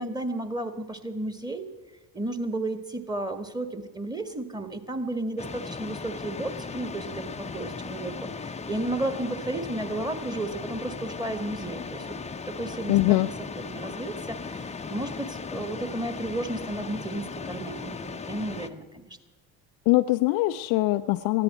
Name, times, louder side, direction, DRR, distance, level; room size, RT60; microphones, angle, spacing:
voice 1, 0.0-1.7 2.1-12.1 12.5-19.2, right 2 dB, 10° right, 8 dB, 1.6 m, -33 dB
sound 1, 5.4-18.7, left 4 dB, 15° left, 0.8 m, -37 dB
voice 2, 12.9-13.3 19.9-21.4, left 19 dB, 45° left, 10 dB, 0.5 m, -22 dB
20.0 x 14.5 x 4.3 m, 1.2 s
figure-of-eight pair, 60°, 49 cm